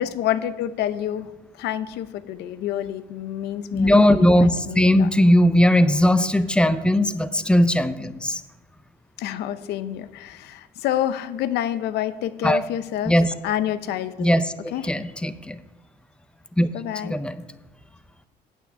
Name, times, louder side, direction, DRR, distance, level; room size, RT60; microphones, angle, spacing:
voice 1, 0.0-1.3 1.6-4.1 4.4-5.1 9.2-13.2 13.4-14.3 14.7-14.9 16.7-17.2, left 11 dB, 80° left, 13 dB, 0.7 m, -28 dB
voice 2, 3.7-8.4 12.4-12.6 13.1-13.3 14.2-15.6 16.6-16.7 17.0-17.4, left 1 dB, 5° left, 12 dB, 0.5 m, -19 dB
9.0 x 5.9 x 7.1 m, 1.1 s
cardioid pair, 110°, 17 cm